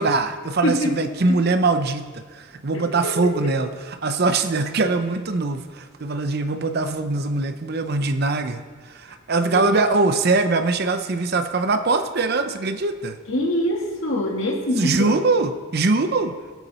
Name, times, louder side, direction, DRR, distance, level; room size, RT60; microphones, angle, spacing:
voice 1, 0.0-13.2 14.8-16.3, right 3 dB, 50° right, 9 dB, 0.7 m, -22 dB
voice 2, 0.6-0.9 1.3-1.4 3.0-3.5 9.5-9.6 13.3-15.2, left 1 dB, 65° left, 0 dB, 2.2 m, -24 dB
18.5 x 8.2 x 4.3 m, 1.5 s
head